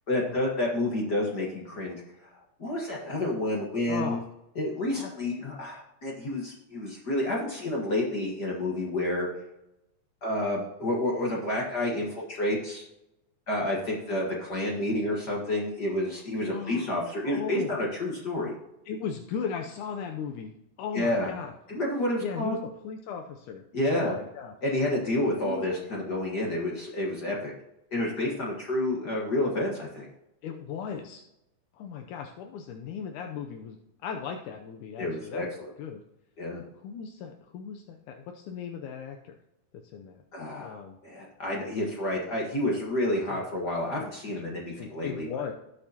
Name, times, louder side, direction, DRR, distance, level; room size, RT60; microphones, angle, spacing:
voice 1, 0.1-2.3 2.6-4.2 4.5-9.3 10.2-12.8 13.5-18.5 20.9-21.3 21.7-22.6 23.7-24.2 24.6-27.5 27.9-30.1 35.0-35.7 36.4-36.6 40.3-45.3, left 1 dB, 45° left, -2 dB, 1.6 m, -29 dB
voice 2, 3.8-4.2 4.9-5.1 16.5-16.9 17.2-17.7 18.9-20.5 20.8-21.5 22.2-22.6 22.8-24.5 25.4-25.7 30.4-31.2 31.7-35.5 35.8-36.0 36.8-39.4 39.9-40.2 40.6-41.0 43.3-43.7 44.5-45.5, left 7 dB, 80° left, 3 dB, 2.2 m, -37 dB
17.5 x 6.7 x 2.9 m, 0.87 s
omnidirectional pair, 3.5 m